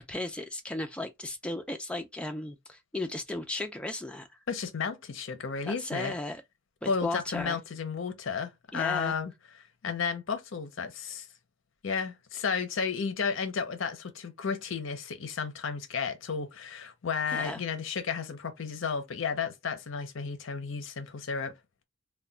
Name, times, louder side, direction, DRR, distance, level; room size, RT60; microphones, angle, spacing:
voice 1, 0.0-4.3 5.7-6.4 6.8-7.6 8.7-9.1 17.3-17.6, left 2 dB, 5° left, 0.3 m, -35 dB
voice 2, 4.5-6.1 6.9-9.3 9.8-11.3 11.8-21.5, left 5 dB, 60° left, 0.5 m, -33 dB
2.2 x 2.1 x 3.7 m
head